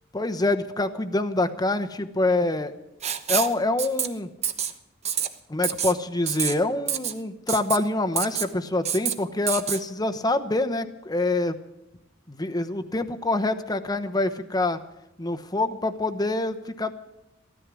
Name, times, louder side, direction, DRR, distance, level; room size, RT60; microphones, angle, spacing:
voice 1, 0.1-2.7 3.3-4.3 5.5-11.6 12.3-14.8 15.2-16.9, left 2 dB, 20° left, 8 dB, 1.0 m, -26 dB
Writing, 3.0-3.5 3.8-4.1 4.4-4.7 5.0-5.3 5.6-5.9 6.3-6.5 6.9-7.1 7.5-7.8 8.2-8.5 8.8-9.1 9.5-9.8, right 8 dB, 35° right, 1.0 m, -26 dB
15.0 x 13.5 x 6.2 m, 0.93 s
head